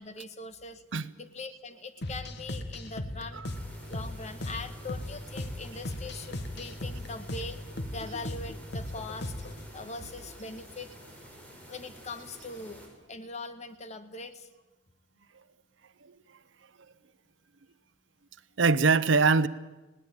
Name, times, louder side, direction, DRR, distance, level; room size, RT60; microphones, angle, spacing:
voice 1, 0.0-0.8 1.2-3.4 3.9-7.6 7.9-9.3 9.7-10.9 11.7-14.5, left 3 dB, 35° left, 10 dB, 1.4 m, -41 dB
sound 1, 2.0-9.7, left 1 dB, 60° left, 1.6 m, -38 dB
voice 2, 3.3-3.6 9.8-9.9 16.0-16.2 18.6-19.5, right 4 dB, 70° right, 16 dB, 0.8 m, -24 dB
sound 2, 3.5-12.9, equal, 5° left, 5.2 m, -50 dB
20.5 x 17.5 x 9.0 m, 1.2 s
head